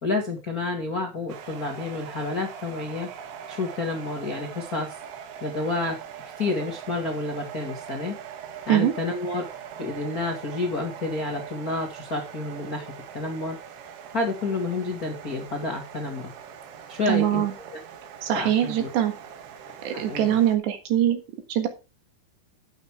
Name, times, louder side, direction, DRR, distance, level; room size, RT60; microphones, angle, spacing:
voice 1, 0.0-3.1 3.5-4.9 5.4-6.0 6.4-8.2 8.7-9.4 9.8-13.6 14.1-16.3 16.9-17.4 18.3-18.9 19.9-20.4, left 3 dB, 85° left, 1 dB, 0.8 m, -29 dB
sound 1, 1.3-20.6, right 8 dB, 85° right, 4.1 m, -42 dB
voice 2, 17.1-17.5 18.2-19.1 19.9-21.2 21.5-21.7, right 11 dB, 70° right, 6 dB, 3.7 m, -22 dB
11.5 x 9.3 x 3.6 m, 0.28 s
omnidirectional pair, 5.5 m